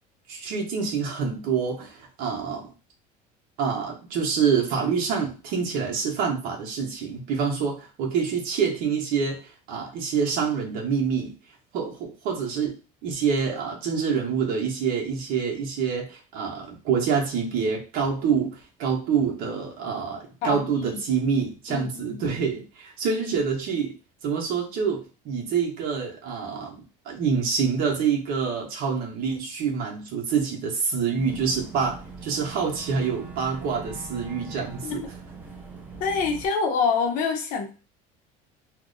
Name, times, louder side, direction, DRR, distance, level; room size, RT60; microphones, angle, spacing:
voice 1, 0.3-2.7 3.6-11.3 11.7-12.7 13.0-24.0 24.2-26.8 27.0-35.1, right 6 dB, 55° right, 1 dB, 0.9 m, -26 dB
voice 2, 20.4-21.0 21.7-22.3 34.8-35.0 36.0-37.7, left 5 dB, 45° left, 4 dB, 0.7 m, -26 dB
Boat Water vehicle / Engine, 31.2-36.5, right 4 dB, 10° right, 0.5 m, -41 dB
2.6 x 2.1 x 3.8 m, 0.34 s
cardioid pair, 170°, 18 cm